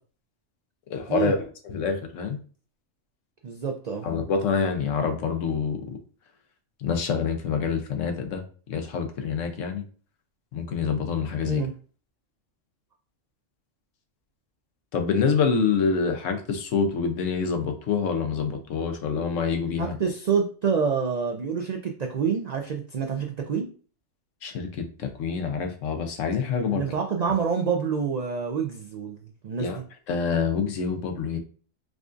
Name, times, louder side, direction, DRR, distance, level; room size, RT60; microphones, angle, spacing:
voice 1, 0.9-2.4 4.0-6.0 6.8-8.4 8.7-9.8 10.5-11.6 14.9-20.0 24.4-26.8 29.6-29.8 30.1-31.4, left 5 dB, 80° left, 5 dB, 1.1 m, -26 dB
voice 2, 3.4-4.1 11.4-11.7 19.8-23.7 26.6-29.8, right 6 dB, 85° right, 3 dB, 0.3 m, -27 dB
4.8 x 2.5 x 2.4 m, 0.41 s
omnidirectional pair, 1.3 m